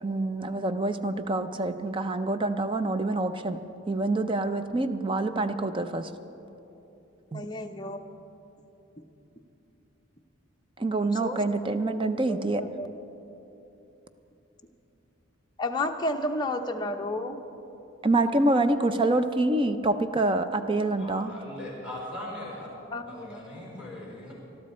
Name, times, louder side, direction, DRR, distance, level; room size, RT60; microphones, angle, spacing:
voice 1, 0.0-3.6 3.9-6.1 7.3-7.4 10.8-12.6 18.0-21.3, right 2 dB, 25° right, 10 dB, 0.5 m, -26 dB
voice 2, 7.3-8.1 11.0-12.9 15.6-17.4 22.9-23.4, left 1 dB, 20° left, 3 dB, 0.7 m, -32 dB
voice 3, 21.0-22.7 23.1-24.3, left 1 dB, 5° right, -4 dB, 4.2 m, -39 dB
21.0 x 12.5 x 4.3 m, 3.0 s
head